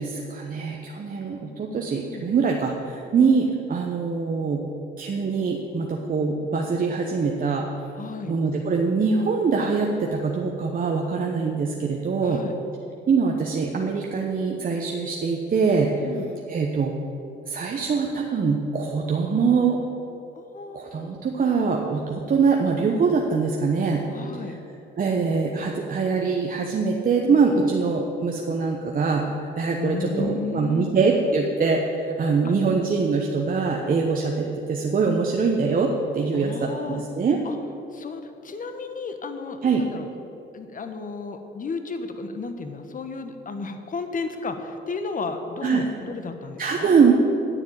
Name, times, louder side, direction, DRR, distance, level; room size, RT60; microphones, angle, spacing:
voice 1, 0.0-4.6 5.0-7.7 8.3-12.4 13.1-15.9 16.5-17.0 17.5-19.8 20.7-24.0 25.0-29.3 29.6-37.4 39.6-39.8 45.6-45.9 46.6-47.1, right 5 dB, 45° right, 1 dB, 1.1 m, -23 dB
voice 2, 1.9-2.3 3.1-3.3 8.0-8.3 12.2-12.5 16.0-16.3 20.3-20.8 24.1-24.6 27.5-27.7 29.8-30.9 32.4-32.5 36.3-37.0 37.4-37.6 37.9-40.1 40.5-46.9, left 4 dB, 40° left, 7 dB, 1.3 m, -33 dB
9.9 x 7.3 x 8.8 m, 2.8 s
cardioid pair, 90°, 20 cm